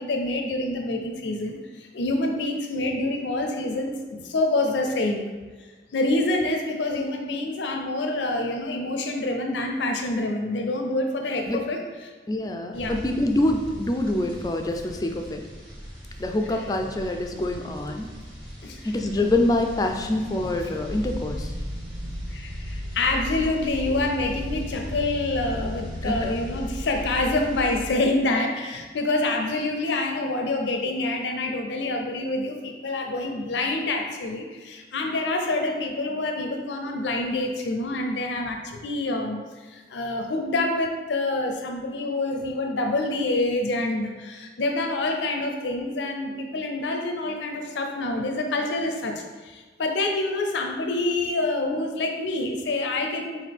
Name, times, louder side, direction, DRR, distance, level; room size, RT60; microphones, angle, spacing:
voice 1, 0.0-5.3 5.9-11.8 12.7-13.0 18.6-18.8 22.3-39.4 39.7-53.5, left 2 dB, 85° left, 3 dB, 0.5 m, -27 dB
voice 2, 12.3-15.4 16.2-18.1 18.8-21.5 26.0-26.3, left 1 dB, 20° left, 4 dB, 0.3 m, -25 dB
sound 1, 12.7-28.0, equal, 20° right, 1.4 m, -41 dB
sound 2, 20.8-27.9, equal, 65° right, 0.6 m, -35 dB
5.7 x 2.7 x 3.4 m, 1.3 s
head